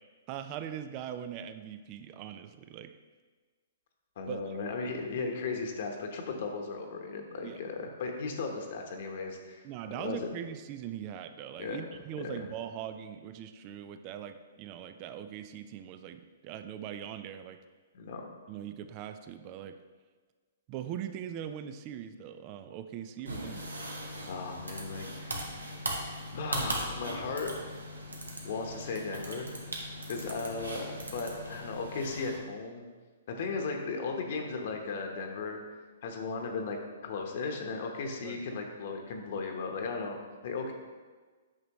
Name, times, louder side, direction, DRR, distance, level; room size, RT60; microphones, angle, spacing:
voice 1, 0.3-2.9 4.3-4.6 7.4-7.6 9.6-17.6 18.5-19.8 20.7-23.7 38.2-38.4, right 9 dB, 35° right, 10 dB, 0.5 m, -41 dB
voice 2, 4.2-9.6 9.9-10.3 11.6-11.8 12.2-12.4 17.9-18.2 24.3-25.6 26.3-27.7 28.4-29.5 30.1-32.8 33.3-35.6 36.0-40.7, left 4 dB, 55° left, 3 dB, 1.1 m, -36 dB
sound 1, 23.3-32.4, right 1 dB, 85° right, 1.3 m, -39 dB
8.8 x 6.1 x 3.1 m, 1.4 s
figure-of-eight pair, 120°, 0 cm